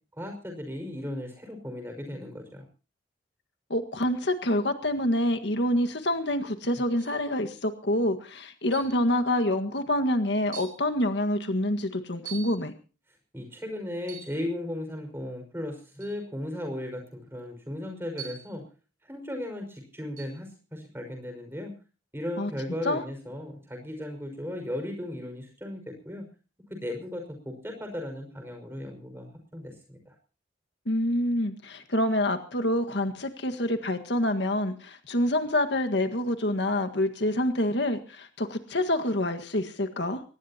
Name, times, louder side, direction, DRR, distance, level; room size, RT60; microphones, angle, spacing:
voice 1, 0.1-2.6 13.3-18.6 19.0-21.8 22.1-26.3 26.7-30.1, left 1 dB, 10° right, 5 dB, 5.6 m, -36 dB
voice 2, 3.7-12.7 22.4-22.5 22.8-23.0 30.9-40.2, left 1 dB, 65° left, 6 dB, 1.8 m, -27 dB
sound 1, 7.0-7.3 8.7-9.0 9.8-9.9 10.5-10.8 12.3-12.6 14.0-14.4 16.0-16.2 18.2-18.6 20.2-20.4, right 8 dB, 45° right, 7.3 m, -43 dB
24.0 x 19.0 x 2.9 m, 0.36 s
head